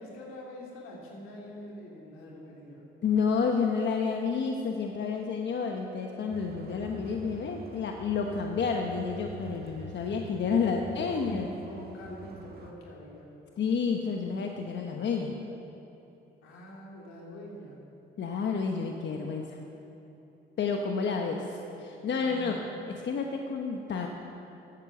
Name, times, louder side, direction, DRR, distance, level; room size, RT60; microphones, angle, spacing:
voice 1, 0.0-2.8 10.6-10.8 11.1-13.4 16.4-17.8 22.1-22.6, left 1 dB, 90° left, -3 dB, 2.7 m, -45 dB
voice 2, 3.0-11.5 13.6-15.4 18.2-19.6 20.6-22.6 22.9-24.1, left 5 dB, 60° left, 2 dB, 1.1 m, -30 dB
sound 1, 6.3-12.7, right 3 dB, 50° right, 1.8 m, -46 dB
13.0 x 8.3 x 7.4 m, 3.0 s
supercardioid pair, 65°, 21 cm